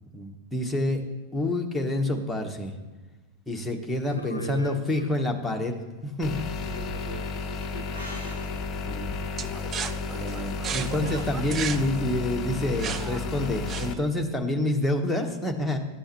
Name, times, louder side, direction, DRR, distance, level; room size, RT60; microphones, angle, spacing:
voice 1, 0.0-1.0 1.3-2.7 3.5-6.4 8.9-9.1 10.1-15.8, left 1 dB, 5° left, 1 dB, 1.1 m, -28 dB
voice 2, 4.1-5.1 6.6-8.2, right 2 dB, 85° left, 9 dB, 0.6 m, -38 dB
sound 1, 6.2-13.9, left 3 dB, 30° left, 0.6 m, -33 dB
sound 2, 7.7-12.8, right 1 dB, 70° right, 1.6 m, -47 dB
sound 3, 9.4-14.2, right 8 dB, 30° right, 0.4 m, -35 dB
12.0 x 6.9 x 3.0 m, 1.2 s
figure-of-eight pair, 90°, 0 cm